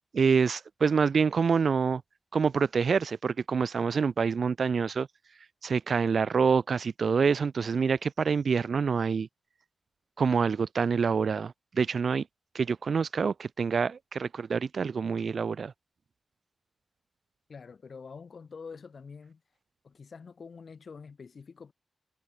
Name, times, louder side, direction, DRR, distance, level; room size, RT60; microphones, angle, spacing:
voice 1, 0.1-2.0 2.3-5.1 5.6-9.3 10.2-12.2 12.5-15.7, right 5 dB, 65° right, 0.5 m, -26 dB
voice 2, 17.5-19.4 19.8-21.7, left 5 dB, 60° left, 1.1 m, -46 dB
wide cardioid pair, 120°, 0 cm